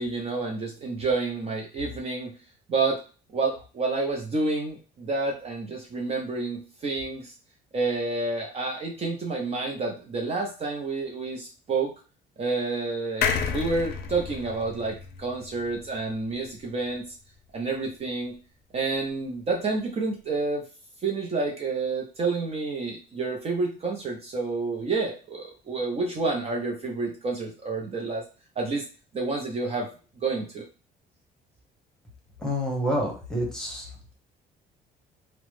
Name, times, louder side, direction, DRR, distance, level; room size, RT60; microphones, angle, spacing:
voice 1, 0.0-2.3 2.7-3.0 3.3-7.3 7.7-11.9 12.4-17.0 17.5-18.3 18.7-20.6 21.0-28.2 28.6-28.8 29.1-29.9 30.2-30.6, right 3 dB, 35° right, 1 dB, 0.6 m, -29 dB
sound 1, 13.2-16.7 17.1-17.2 17.4-17.5, left 6 dB, 70° left, 0.5 m, -31 dB
voice 2, 32.4-33.9, equal, 5° left, -1 dB, 1.0 m, -28 dB
2.9 x 2.1 x 3.1 m, 0.36 s
cardioid pair, 110°, 17 cm